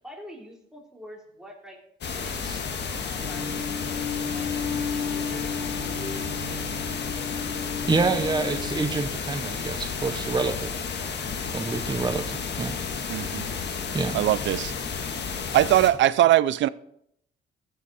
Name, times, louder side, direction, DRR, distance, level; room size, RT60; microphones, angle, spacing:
voice 1, 0.0-4.5 4.9-7.8, equal, 5° right, 3.4 m, -46 dB
sound 1, 2.0-15.9, left 5 dB, 60° left, 1.6 m, -32 dB
sound 2, 3.2-8.9, left 5 dB, 40° left, 4.5 m, -33 dB
voice 2, 7.9-10.7 11.5-12.7 13.9-14.2, right 4 dB, 20° right, 0.9 m, -27 dB
voice 3, 13.1-13.5 14.1-14.7 15.5-16.7, right 13 dB, 70° right, 0.4 m, -20 dB
15.0 x 7.5 x 4.2 m
cardioid pair, 90°, 20 cm